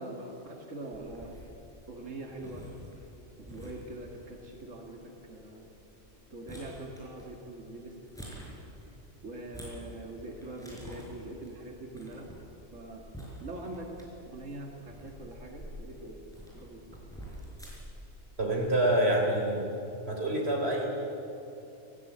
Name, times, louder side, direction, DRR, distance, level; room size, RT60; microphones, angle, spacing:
voice 1, 0.0-1.4 1.9-2.7 3.5-5.7 6.3-8.0 9.2-12.3 12.7-13.0 13.4-13.9 14.2-16.3 16.5-16.8, right 1 dB, 90° right, 1 dB, 2.2 m, -43 dB
sound 1, 0.9-18.1, equal, 5° left, 5.3 m, -49 dB
voice 2, 18.4-19.7 20.1-20.9, right 1 dB, 55° right, 0 dB, 4.0 m, -27 dB
18.5 x 17.5 x 8.7 m, 2.9 s
omnidirectional pair, 1.3 m